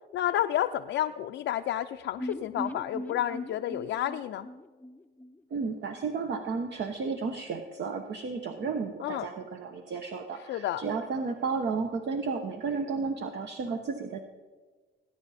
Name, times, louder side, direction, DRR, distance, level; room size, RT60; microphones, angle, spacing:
voice 1, 0.1-4.5 9.0-9.3 10.5-10.8, left 12 dB, 75° left, 5 dB, 0.5 m, -30 dB
sound 1, 2.2-6.0 6.3-6.4 6.7-6.8, left 1 dB, 10° left, 0.6 m, -40 dB
voice 2, 5.5-14.2, right 4 dB, 60° right, 5 dB, 1.1 m, -33 dB
18.5 x 9.8 x 4.2 m, 1.4 s
cardioid pair, 90°, 20 cm